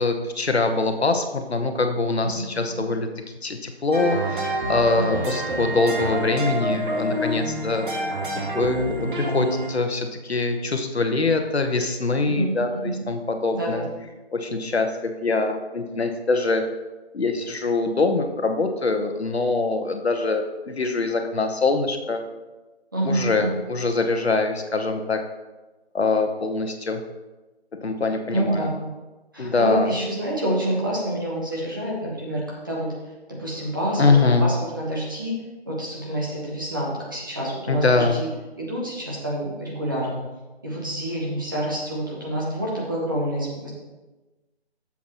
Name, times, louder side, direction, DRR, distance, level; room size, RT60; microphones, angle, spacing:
voice 1, 0.0-3.1 3.4-8.1 8.5-13.8 14.3-16.6 17.1-22.2 23.0-25.2 25.9-27.0 27.8-28.7 29.4-29.9 34.0-34.5 37.7-38.2, left 3 dB, 75° left, 6 dB, 1.1 m, -23 dB
sound 1, 3.9-9.7, right 1 dB, 50° right, 1.6 m, -28 dB
voice 2, 12.3-13.0 13.5-13.9 22.9-23.5 28.3-28.9 29.3-32.9 33.3-35.4 35.7-38.3 38.6-40.2 40.6-43.7, right 1 dB, 20° right, -5 dB, 1.1 m, -27 dB
10.0 x 7.3 x 3.0 m, 1.2 s
figure-of-eight pair, 175°, 32 cm